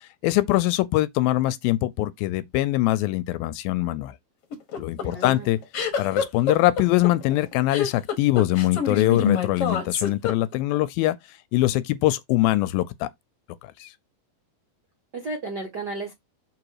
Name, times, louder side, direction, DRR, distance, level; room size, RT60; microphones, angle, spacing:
voice 1, 0.0-4.2 4.8-5.6 6.0-13.1 13.6-13.9, left 16 dB, 80° left, 2.3 m, -23 dB
sound 1, 4.5-10.8, left 6 dB, 55° left, 1.7 m, -26 dB
voice 2, 5.0-5.5 15.1-16.1, right 3 dB, 80° right, 0.9 m, -33 dB
6.7 x 3.8 x 4.8 m
omnidirectional pair, 4.4 m